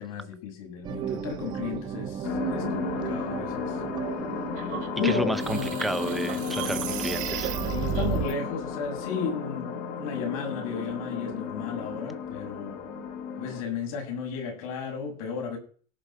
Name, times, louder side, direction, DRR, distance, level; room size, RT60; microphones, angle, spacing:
voice 1, 0.0-3.8 4.9-5.7 6.6-6.8 7.7-12.8 13.4-15.6, left 6 dB, 90° left, 7.2 m, -33 dB
sound 1, 0.8-7.8, right 8 dB, 25° right, 0.9 m, -36 dB
sound 2, 2.2-13.6, left 6 dB, 55° left, 3.0 m, -34 dB
sound 3, 4.6-8.3, right 11 dB, 50° right, 1.3 m, -33 dB
voice 2, 5.0-7.6, right 1 dB, ahead, 0.5 m, -31 dB
17.5 x 7.1 x 6.5 m
cardioid pair, 175°, 18 cm